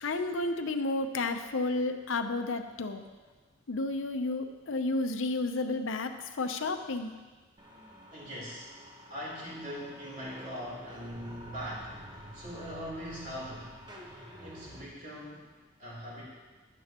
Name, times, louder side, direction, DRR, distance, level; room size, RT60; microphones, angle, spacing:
voice 1, 0.0-3.0 3.7-7.1, left 2 dB, 80° left, 7 dB, 0.7 m, -31 dB
sound 1, 7.6-14.8, equal, 20° right, 1.1 m, -49 dB
voice 2, 8.1-8.7 9.1-13.8 14.4-15.5 15.8-16.2, equal, 40° right, -5 dB, 3.4 m, -41 dB
14.0 x 10.0 x 3.0 m, 1.3 s
head